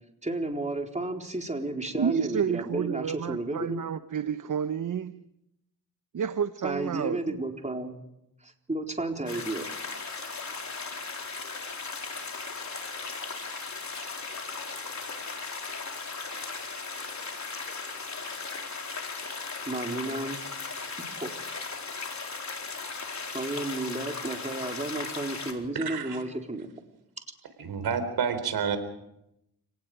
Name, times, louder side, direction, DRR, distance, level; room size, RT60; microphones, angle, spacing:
voice 1, 0.2-3.8 6.6-7.9 8.4-9.6 19.7-20.4 21.1-21.3 23.3-26.7, right 2 dB, 20° right, 2 dB, 4.2 m, -32 dB
voice 2, 1.9-5.2 6.1-7.4, right 8 dB, 55° right, 11 dB, 1.1 m, -30 dB
sound 1, 9.3-25.5, left 4 dB, 45° left, 4.4 m, -37 dB
voice 3, 25.7-26.2 27.6-28.8, right 6 dB, 75° right, 10 dB, 4.0 m, -29 dB
30.0 x 19.0 x 5.1 m, 0.83 s
supercardioid pair, 50°, 38 cm